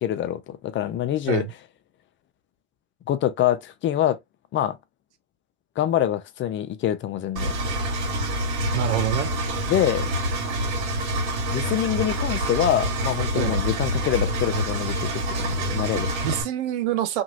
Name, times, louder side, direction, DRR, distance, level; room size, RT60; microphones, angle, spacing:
voice 1, 0.0-1.5 3.1-4.2 4.5-4.8 5.8-7.5 9.7-10.1 11.5-15.1 15.4-16.1, left 11 dB, 35° left, 0.5 m, -25 dB
Engine, 7.4-16.4, right 1 dB, 60° right, 1.9 m, -26 dB
voice 2, 8.7-9.3 13.3-13.6 16.2-17.2, right 13 dB, 80° right, 0.8 m, -26 dB
2.9 x 2.7 x 2.7 m
supercardioid pair, 100°, 34 cm